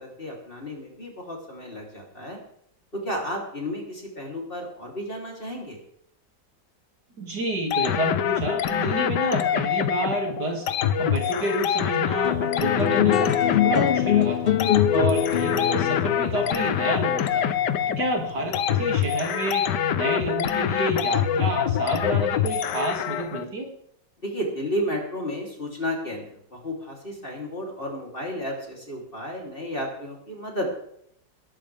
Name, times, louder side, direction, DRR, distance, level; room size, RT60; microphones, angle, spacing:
voice 1, 0.0-2.4 3.0-5.8 24.2-30.8, equal, 30° left, -1 dB, 3.6 m, -32 dB
voice 2, 7.2-10.7 11.0-13.4 13.6-14.6 14.9-17.5 17.9-19.6 19.9-23.7, right 1 dB, 60° right, 1 dB, 3.2 m, -29 dB
sound 1, 7.7-23.4, left 9 dB, 70° left, 1.4 m, -25 dB
sound 2, 12.2-18.9, left 10 dB, 90° left, 0.5 m, -24 dB
21.0 x 11.5 x 3.5 m, 0.68 s
omnidirectional pair, 2.0 m